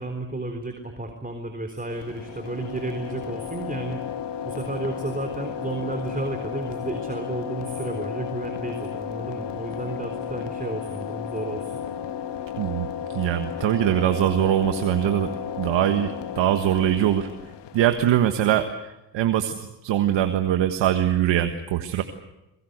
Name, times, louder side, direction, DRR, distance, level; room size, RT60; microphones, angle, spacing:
voice 1, 0.0-4.0 4.4-11.7, right 2 dB, 20° right, 5 dB, 3.8 m, -32 dB
sound 1, 1.9-17.9, left 9 dB, 75° left, 1.7 m, -34 dB
voice 2, 12.6-15.3 15.6-17.3 17.7-22.0, right 11 dB, 85° right, 7 dB, 1.5 m, -22 dB
22.5 x 22.5 x 8.0 m, 0.96 s
supercardioid pair, 65°, 43 cm